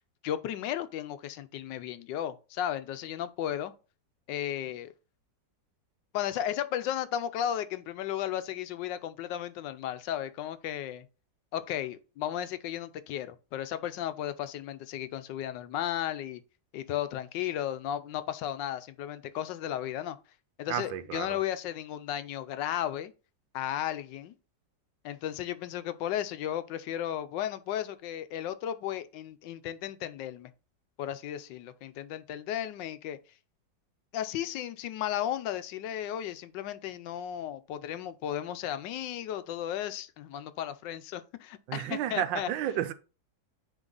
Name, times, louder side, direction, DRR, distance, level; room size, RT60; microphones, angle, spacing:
voice 1, 0.2-3.7 4.3-4.9 6.1-11.1 11.5-16.4 16.7-20.2 20.6-23.1 23.5-24.3 25.0-30.5 31.0-33.2 34.1-42.5, left 11 dB, 80° left, 1.3 m, -34 dB
voice 2, 20.7-21.4 41.7-42.9, right 11 dB, 90° right, 1.4 m, -32 dB
9.1 x 3.2 x 3.8 m
omnidirectional pair, 2.0 m